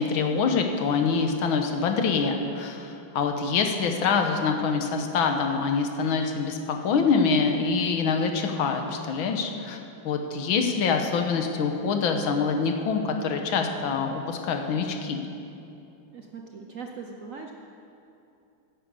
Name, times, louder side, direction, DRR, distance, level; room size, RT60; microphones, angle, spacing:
voice 1, 0.0-9.8 10.0-15.3, left 5 dB, 80° left, 4 dB, 1.8 m, -25 dB
voice 2, 16.1-17.5, right 5 dB, 60° right, 2 dB, 0.9 m, -40 dB
10.0 x 9.5 x 8.3 m, 2.7 s
omnidirectional pair, 2.2 m